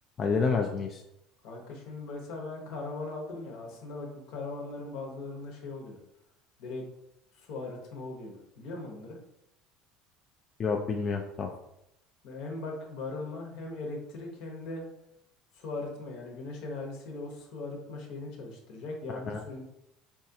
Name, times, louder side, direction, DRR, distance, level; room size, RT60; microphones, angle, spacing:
voice 1, 0.2-1.0 10.6-11.5 19.1-19.4, left 5 dB, 35° left, 2 dB, 0.3 m, -29 dB
voice 2, 1.4-6.0 6.6-6.8 7.3-9.2 12.2-14.8 15.5-19.6, left 3 dB, 70° left, 1 dB, 0.9 m, -39 dB
4.3 x 2.4 x 2.7 m, 0.82 s
cardioid pair, 130°, 0 cm